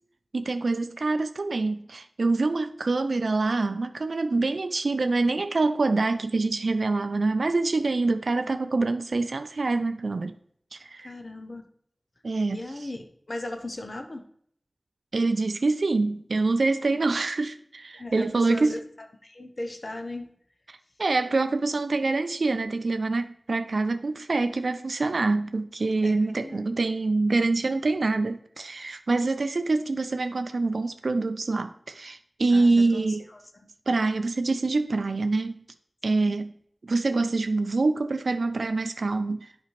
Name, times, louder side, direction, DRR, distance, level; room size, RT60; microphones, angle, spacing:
voice 1, 0.3-10.4 10.7-11.1 12.2-12.6 15.1-18.8 20.7-33.2 33.9-35.6 36.0-36.5 36.8-39.5, right 3 dB, 90° right, 0.3 m, -25 dB
voice 2, 11.0-11.7 12.5-14.3 17.9-18.8 19.2-20.3 26.0-26.7 32.5-33.1 33.3-33.4 36.1-36.4, left 1 dB, 60° left, 0.7 m, -37 dB
8.2 x 5.2 x 3.1 m
wide cardioid pair, 40°, 0 cm